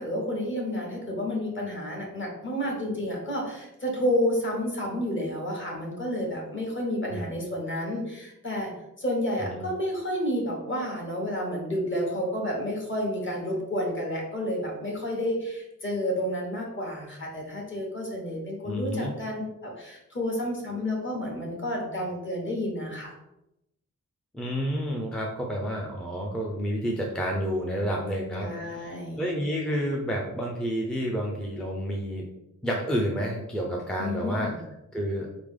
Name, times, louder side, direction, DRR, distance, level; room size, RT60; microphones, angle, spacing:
voice 1, 0.0-8.7 9.0-23.1 28.4-29.2 34.0-34.6, equal, 40° left, -1 dB, 1.3 m, -30 dB
voice 2, 18.6-19.1 24.3-32.2 32.6-34.5 34.9-35.3, equal, ahead, -1 dB, 0.5 m, -30 dB
4.3 x 3.3 x 3.7 m, 0.88 s
wide cardioid pair, 170°, 32 cm